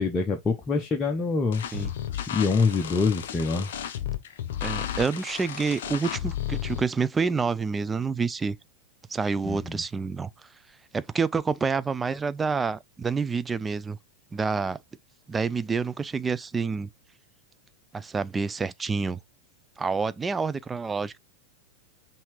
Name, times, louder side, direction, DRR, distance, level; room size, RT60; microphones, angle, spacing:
voice 1, 0.0-1.6 2.3-3.7 9.4-9.8, left 4 dB, 20° left, 0.7 m, -25 dB
sound 1, 1.5-6.8, left 10 dB, 55° left, 0.6 m, -33 dB
voice 2, 4.6-8.6 9.1-10.3 10.9-14.0 14.3-14.8 15.3-16.9 17.9-19.2 19.8-21.2, right 5 dB, 15° right, 0.3 m, -28 dB
5.5 x 2.7 x 3.2 m
figure-of-eight pair, 90°, 0 cm